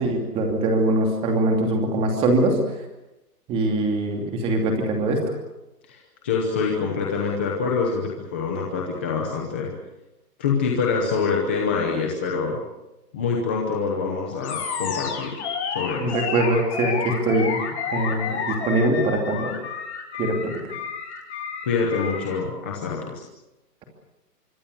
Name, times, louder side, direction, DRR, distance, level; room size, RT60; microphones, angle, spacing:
voice 1, 0.0-2.6 3.5-5.2 16.0-17.6 17.9-19.5 20.2-20.6, right 2 dB, 10° right, 3 dB, 2.8 m, -22 dB
voice 2, 5.9-9.7 10.4-12.6 13.1-15.4 15.7-16.1 21.7-23.2, left 5 dB, 5° left, -1 dB, 0.8 m, -25 dB
Animal, 14.4-22.4, left 6 dB, 45° left, 5.6 m, -30 dB
25.0 x 24.0 x 6.9 m, 0.98 s
hypercardioid pair, 170°, 48 cm